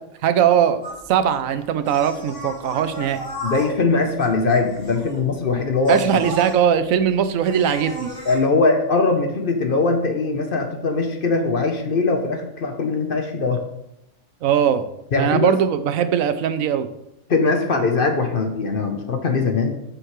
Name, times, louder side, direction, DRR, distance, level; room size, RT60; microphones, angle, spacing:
voice 1, 0.2-0.8 1.1-3.2 5.9-8.1 14.4-14.9 15.2-16.9, right 9 dB, 80° right, 11 dB, 1.0 m, -20 dB
sound 1, 0.8-8.4, equal, 85° left, 3.7 m, -35 dB
voice 2, 3.4-6.2 8.2-13.6 15.1-15.6 17.3-19.8, left 3 dB, 50° left, 5 dB, 0.9 m, -21 dB
7.7 x 6.5 x 3.1 m, 0.81 s
omnidirectional pair, 1.4 m